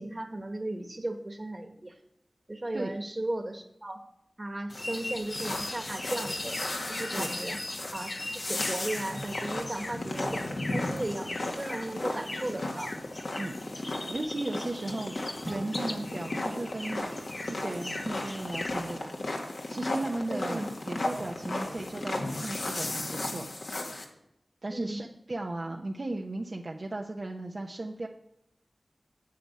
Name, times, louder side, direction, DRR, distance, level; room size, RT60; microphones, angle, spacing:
voice 1, 0.0-2.0 2.5-4.0 4.4-6.6 6.9-7.6 7.9-12.9 20.3-20.7 24.7-25.0, right 1 dB, 35° right, 6 dB, 1.5 m, -36 dB
sound 1, 4.7-24.0, left 2 dB, 70° left, 1.8 m, -35 dB
sound 2, 4.7-19.0, left 2 dB, 40° left, 1.0 m, -40 dB
voice 2, 14.1-15.2 15.5-17.1 17.5-19.2 19.7-23.5 24.6-28.1, right 2 dB, 55° right, 1 dB, 0.8 m, -36 dB
sound 3, 15.4-18.2, equal, 10° right, 1.1 m, -45 dB
9.5 x 7.8 x 6.7 m, 0.81 s
wide cardioid pair, 60°, 0 cm